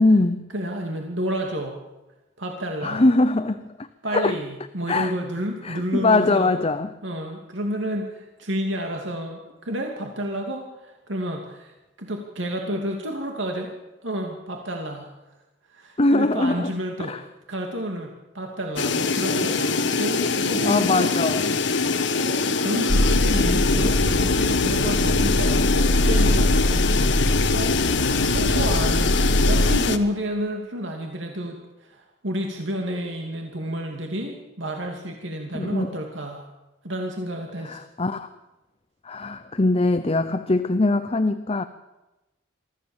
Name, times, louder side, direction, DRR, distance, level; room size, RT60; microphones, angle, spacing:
voice 1, 0.0-0.5 2.8-4.4 4.9-5.1 5.6-6.9 16.0-16.7 17.0-17.2 20.7-21.6 35.5-35.9 37.6-38.3 39.0-41.6, left 2 dB, 30° left, 10 dB, 0.8 m, -22 dB
voice 2, 0.5-1.8 2.4-3.0 4.0-6.5 7.0-13.7 14.0-15.1 15.7-17.2 17.5-21.1 22.1-27.1 27.5-27.8 28.2-36.5 36.8-37.9, equal, 75° right, 2 dB, 2.6 m, -30 dB
sound 1, 18.8-30.0, left 4 dB, 65° left, 1.4 m, -23 dB
sound 2, 22.9-29.8, left 1 dB, 80° left, 1.6 m, -22 dB
24.5 x 15.0 x 7.3 m, 1.0 s
head